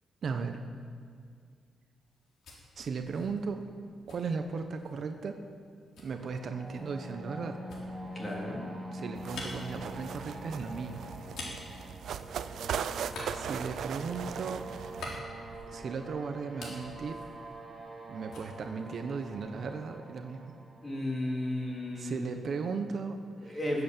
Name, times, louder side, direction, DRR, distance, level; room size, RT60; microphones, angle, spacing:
voice 1, 0.2-0.6 2.8-3.7 4.1-5.4 6.0-7.6 8.9-11.1 13.3-14.7 15.7-17.2 18.1-20.5 22.0-23.6, right 5 dB, 55° right, 6 dB, 1.0 m, -36 dB
sound 1, 2.0-5.1 5.9-12.6 13.0-16.0 16.3-18.0 18.3-19.6, left 2 dB, 80° left, 3.9 m, -48 dB
sound 2, 6.1-22.0, right 1 dB, 15° right, 3.0 m, -45 dB
voice 2, 8.1-8.6 20.8-22.2 23.5-23.8, left 1 dB, 25° left, -2 dB, 3.7 m, -33 dB
sound 3, 9.1-15.2, right 8 dB, 75° right, 0.6 m, -39 dB
19.0 x 8.2 x 7.4 m, 2.2 s
cardioid pair, 120°, 0 cm